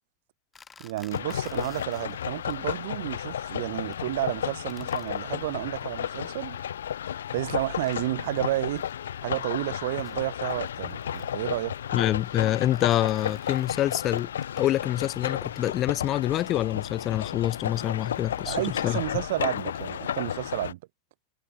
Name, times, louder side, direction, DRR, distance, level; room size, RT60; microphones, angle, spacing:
sound 1, 0.5-2.7 3.0-3.3 3.6-4.0 4.3-7.0 7.4-7.5 7.7-9.0 9.4-15.0 15.6-18.4, left 5 dB, 15° left, 5.4 m, -56 dB
voice 1, 0.8-6.6 7.3-8.8 9.2-11.7 18.5-20.8, right 17 dB, 55° right, 0.8 m, -31 dB
sound 2, 1.1-20.7, left 9 dB, 65° left, 0.5 m, -33 dB
voice 2, 11.9-14.3 14.6-19.0, left 13 dB, 35° left, 1.1 m, -26 dB
figure-of-eight pair, 90°, 0 cm